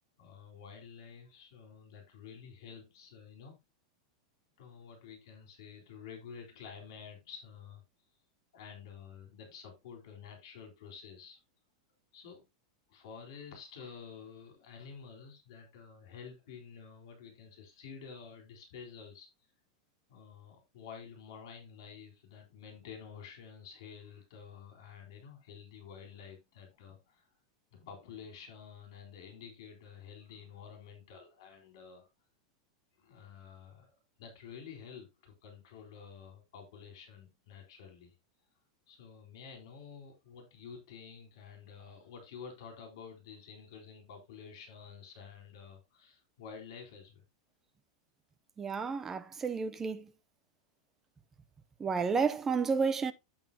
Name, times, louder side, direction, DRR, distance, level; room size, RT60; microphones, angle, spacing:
voice 1, 0.2-3.6 4.6-7.8 8.5-11.4 12.1-12.5 12.9-19.3 20.1-27.3 27.7-32.1 33.0-33.9 34.2-38.1 38.9-47.2, left 6 dB, 60° left, 3.8 m, -50 dB
voice 2, 48.6-50.1 51.8-53.1, right 5 dB, 15° right, 0.6 m, -31 dB
9.0 x 7.9 x 2.8 m
supercardioid pair, 165°, 3 cm